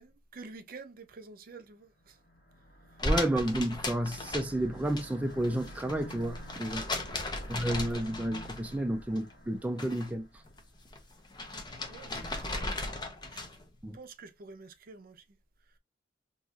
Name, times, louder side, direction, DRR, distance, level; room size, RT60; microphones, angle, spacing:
voice 1, 0.0-2.2 6.8-7.2 11.9-13.0 13.3-13.4 13.9-15.4, right 4 dB, 50° right, 0.6 m, -49 dB
sound 1, 2.0-10.6, equal, 80° left, 1.4 m, -50 dB
sound 2, 3.0-5.0 5.3-8.8 9.2-10.1 10.4-13.7, left 2 dB, 25° left, 0.7 m, -36 dB
voice 2, 3.0-6.9 7.5-10.3 13.8-14.0, right 1 dB, 10° right, 0.3 m, -31 dB
3.9 x 2.9 x 2.4 m
head